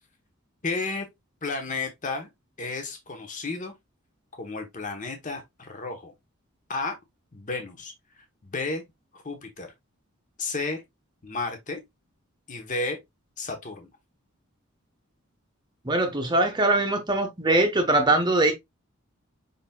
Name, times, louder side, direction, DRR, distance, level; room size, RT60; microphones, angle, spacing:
voice 1, 0.6-1.1 1.4-2.3 2.6-3.7 4.4-6.1 6.7-7.0 7.3-7.9 8.4-8.8 9.1-9.7 10.4-10.8 11.2-11.8 12.5-13.0 13.4-13.9, left 3 dB, 35° left, 1.0 m, -32 dB
voice 2, 15.8-18.5, right 2 dB, 20° right, 0.9 m, -22 dB
5.5 x 4.0 x 2.2 m
head